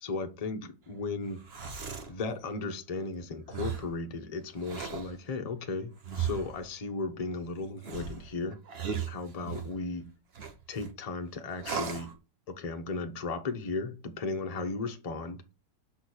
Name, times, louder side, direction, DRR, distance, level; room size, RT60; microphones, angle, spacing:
voice 1, 0.0-1.4 2.1-8.6 9.1-10.1 10.7-12.1 12.5-15.4, left 3 dB, 40° left, 0.6 m, -35 dB
sound 1, 1.3-2.1 3.5-3.9 4.6-5.1 6.0-6.6 7.8-9.7 10.3-10.9 11.6-12.1, right 7 dB, 40° right, 1.1 m, -36 dB
6.2 x 4.3 x 6.3 m
omnidirectional pair, 1.9 m